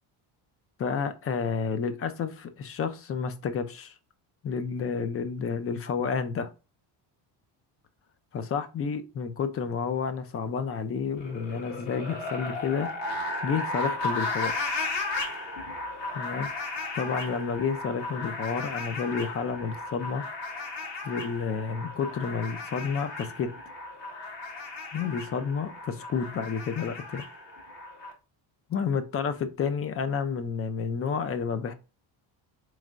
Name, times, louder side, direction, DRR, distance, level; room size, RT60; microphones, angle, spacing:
voice 1, 0.8-3.9 4.4-6.5 8.3-12.9 13.4-14.6 16.1-16.5 16.9-20.2 21.0-23.5 24.9-27.2 28.7-31.7, left 6 dB, 30° left, 10 dB, 0.4 m, -30 dB
sound 1, 11.1-28.1, left 2 dB, 60° left, 1.6 m, -35 dB
4.3 x 3.2 x 2.4 m, 0.32 s
cardioid pair, 130°, 49 cm